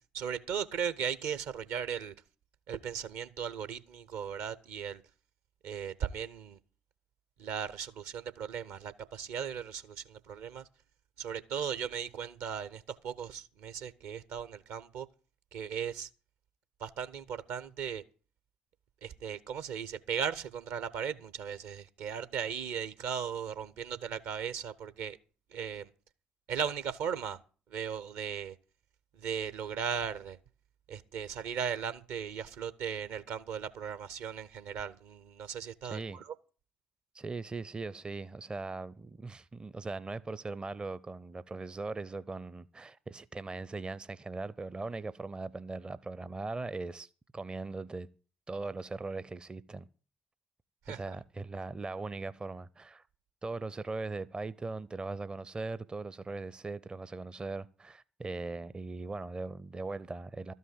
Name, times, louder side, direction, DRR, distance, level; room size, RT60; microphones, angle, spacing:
voice 1, 0.1-2.1 2.7-5.0 5.6-6.6 7.4-10.6 11.2-15.1 15.5-16.1 16.8-18.0 19.0-25.2 25.5-25.9 26.5-27.4 27.7-28.6 29.1-30.4 30.9-36.3 50.9-51.1, right 7 dB, 60° right, 0.7 m, -37 dB
voice 2, 35.8-36.2 37.1-48.1 48.5-49.9 50.9-53.0 53.4-60.5, right 3 dB, 20° right, 0.5 m, -39 dB
13.0 x 5.5 x 9.1 m
figure-of-eight pair, 50°, 5 cm